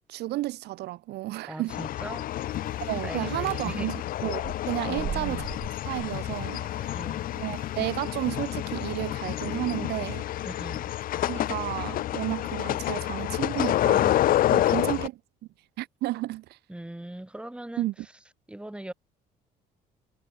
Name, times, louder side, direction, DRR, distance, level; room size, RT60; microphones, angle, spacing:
voice 1, 0.1-1.8 2.8-5.5 5.8-7.0 7.4-10.3 11.2-14.2 14.5-15.2 15.8-16.6 17.8-17.9, right 17 dB, 80° right, 1.2 m, -32 dB
voice 2, 1.5-2.7 3.0-3.9 4.9-5.5 6.8-7.3 10.4-10.9 14.5-14.9 16.7-17.9 18.5-18.9, right 1 dB, 5° right, 3.5 m, -40 dB
sound 1, 1.7-15.1, left 13 dB, 55° left, 0.6 m, -29 dB
sound 2, 2.3-8.5, right 12 dB, 55° right, 0.9 m, -42 dB
cardioid pair, 110°, 17 cm